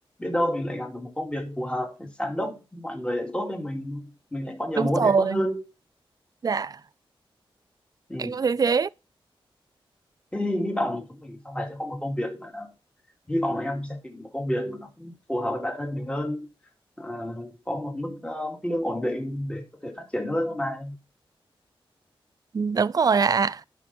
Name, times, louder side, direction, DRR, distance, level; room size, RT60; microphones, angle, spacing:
voice 1, 0.2-5.7 8.1-8.4 10.3-12.7 13.3-16.5 17.0-21.0, left 1 dB, 10° left, 2.6 m, -30 dB
voice 2, 4.8-5.4 6.4-6.7 8.2-8.9 22.5-23.6, right 5 dB, 40° right, 0.4 m, -22 dB
11.5 x 5.8 x 4.3 m
cardioid pair, 70°, 10 cm